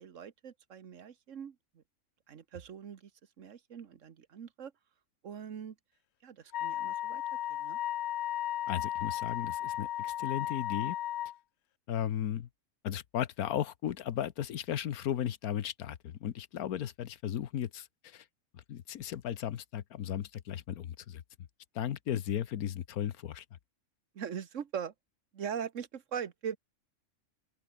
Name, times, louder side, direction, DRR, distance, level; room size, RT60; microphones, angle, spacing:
voice 1, 0.0-1.8 2.3-3.1 3.4-4.7 5.2-5.7 6.2-7.2 7.5-7.8 24.1-24.9 25.3-26.6, right 8 dB, 60° right, 1.5 m, -41 dB
Wind instrument woodwind instrument, 6.5-11.4, left 13 dB, 65° left, 0.7 m, -35 dB
voice 2, 8.7-11.0 11.9-12.5 12.8-18.2 18.5-21.2 21.7-23.4, left 10 dB, 90° left, 1.4 m, -35 dB
open air
omnidirectional pair, 1.5 m